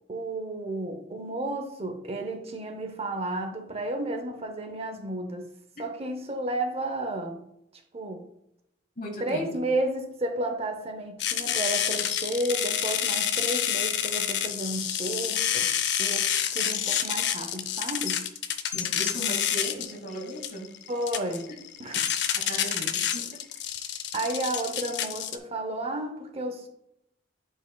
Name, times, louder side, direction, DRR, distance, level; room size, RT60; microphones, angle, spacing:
voice 1, 0.1-5.5 5.8-7.4 7.9-8.2 9.2-15.7 16.0-18.2 20.9-21.5 21.8-22.1 22.5-22.8 24.1-26.7, right 1 dB, 35° right, 0.7 m, -32 dB
voice 2, 9.0-9.6 18.7-20.7 22.3-23.4, equal, 45° left, 1.2 m, -37 dB
sound 1, 11.2-25.4, left 9 dB, 65° left, 0.5 m, -28 dB
10.0 x 4.6 x 2.3 m
head